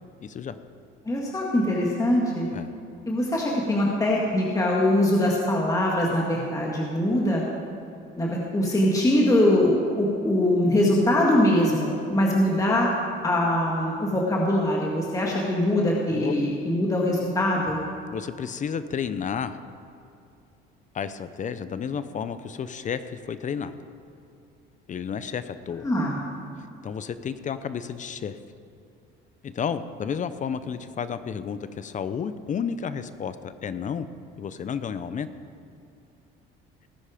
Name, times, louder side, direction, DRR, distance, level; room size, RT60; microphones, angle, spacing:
voice 1, 0.2-0.6 2.5-2.7 16.1-16.3 18.1-19.6 20.9-23.7 24.9-25.9 26.8-28.4 29.4-34.1 34.4-35.3, left 7 dB, 35° left, 12 dB, 0.7 m, -31 dB
voice 2, 1.1-2.5 3.1-7.4 8.2-12.9 13.2-17.8 25.8-26.2, left 1 dB, 15° left, -3 dB, 1.9 m, -22 dB
18.5 x 10.0 x 5.1 m, 2.5 s
cardioid pair, 115°, 21 cm